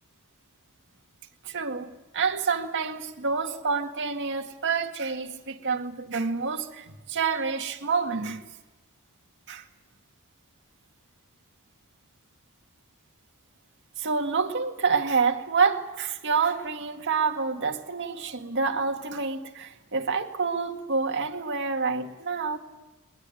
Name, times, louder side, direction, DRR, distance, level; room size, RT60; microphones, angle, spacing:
voice 1, 1.4-1.9 2.1-8.4 9.5-9.7 14.0-22.6, right 5 dB, 55° right, 2.0 m, -28 dB
21.0 x 21.0 x 9.3 m
head